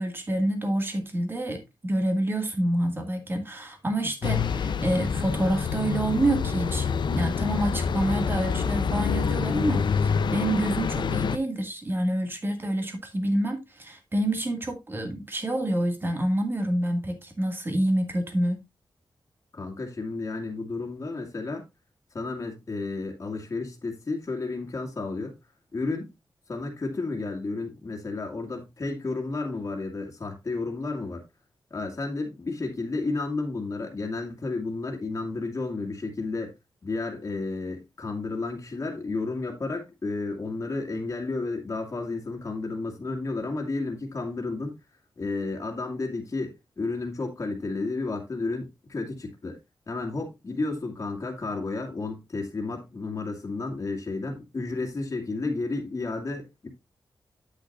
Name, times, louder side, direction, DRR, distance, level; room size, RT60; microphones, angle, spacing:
voice 1, 0.0-18.6, right 1 dB, 25° right, 2.0 m, -27 dB
sound 1, 4.2-11.4, left 6 dB, 65° left, 0.6 m, -27 dB
voice 2, 19.5-21.6 22.1-25.3 25.7-26.1 26.5-31.2 31.7-36.5 36.8-44.7 45.2-49.6 49.9-56.7, left 3 dB, 35° left, 2.1 m, -32 dB
8.6 x 8.4 x 2.5 m
wide cardioid pair, 145°, 8 cm